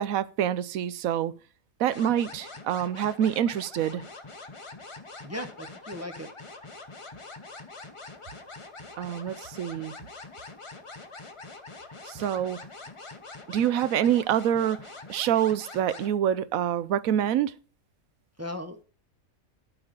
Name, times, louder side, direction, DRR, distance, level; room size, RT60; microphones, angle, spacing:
voice 1, 0.0-1.3 1.8-4.0 9.0-9.9 12.1-12.6 13.5-14.8 15.1-17.6, right 10 dB, 75° right, 1.0 m, -26 dB
sound 1, 1.9-16.1, left 3 dB, 25° left, 0.9 m, -44 dB
voice 2, 5.2-6.3 18.4-18.8, left 1 dB, 15° right, 0.7 m, -37 dB
11.5 x 4.8 x 5.2 m
omnidirectional pair, 1.5 m